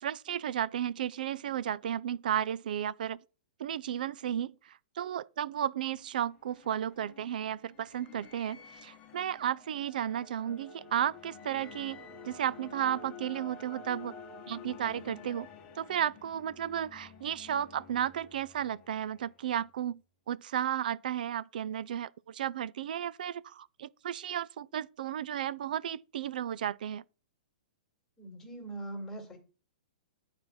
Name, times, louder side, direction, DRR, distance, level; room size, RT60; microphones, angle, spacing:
voice 1, 0.0-3.2 3.6-14.2 14.5-15.5 15.8-20.0 20.3-27.0, right 10 dB, 65° right, 0.5 m, -33 dB
sound 1, 5.9-19.7, left 5 dB, 25° left, 1.1 m, -50 dB
voice 2, 28.2-29.4, right 2 dB, 10° left, 2.2 m, -41 dB
9.5 x 4.4 x 6.4 m
hypercardioid pair, 155°, 5 cm